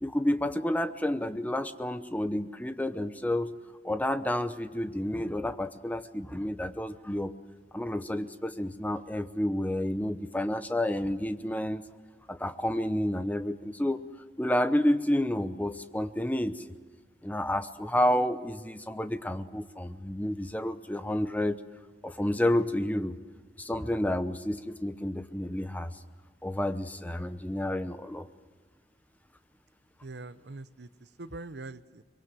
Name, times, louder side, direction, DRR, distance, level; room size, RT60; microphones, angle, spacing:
voice 1, 0.0-3.5 3.8-7.3 7.7-11.8 12.3-14.0 14.4-16.6 17.2-21.6 22.0-23.1 23.6-25.9 26.4-28.3, left 1 dB, 10° left, 10 dB, 0.8 m, -30 dB
voice 2, 30.0-32.0, right 2 dB, 70° right, 14 dB, 0.8 m, -43 dB
24.0 x 22.5 x 7.8 m, 1.5 s
head